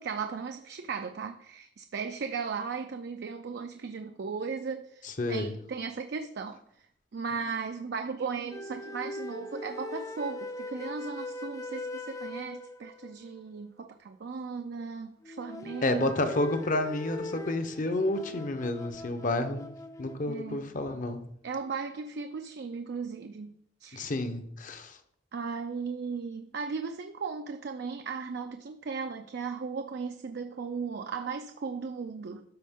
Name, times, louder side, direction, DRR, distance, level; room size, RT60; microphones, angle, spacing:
voice 1, 0.0-6.9 7.1-16.3 20.3-20.7 21.4-24.1 25.3-32.4, right 5 dB, 60° right, 7 dB, 0.4 m, -36 dB
voice 2, 5.2-5.5 15.8-19.7 20.0-21.2 23.9-25.0, left 2 dB, 45° left, 8 dB, 0.8 m, -30 dB
sound 1, 8.5-13.3 15.2-20.3, left 2 dB, 15° left, 0.4 m, -41 dB
12.5 x 4.2 x 3.6 m, 0.70 s
head